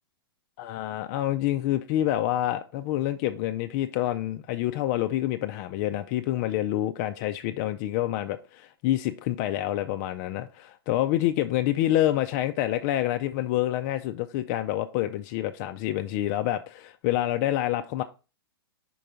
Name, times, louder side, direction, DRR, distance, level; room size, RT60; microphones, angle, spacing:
voice 1, 0.6-18.0, left 13 dB, 35° left, 7 dB, 0.4 m, -27 dB
5.4 x 4.5 x 3.8 m, 0.33 s
figure-of-eight pair, 110°, 13 cm